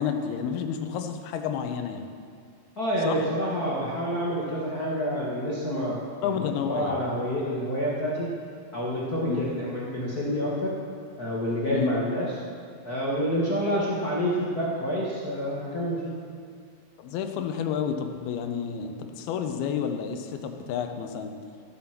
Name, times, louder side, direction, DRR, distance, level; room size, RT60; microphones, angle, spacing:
voice 1, 0.0-2.1 3.0-3.2 6.2-7.0 9.3-9.4 11.7-11.9 17.0-21.3, left 7 dB, 90° left, 6 dB, 2.8 m, -30 dB
voice 2, 2.8-8.3 8.7-10.7 11.2-12.3 12.8-16.1, equal, 65° left, -6 dB, 0.9 m, -28 dB
14.5 x 7.7 x 5.9 m, 2.2 s
omnidirectional pair, 4.3 m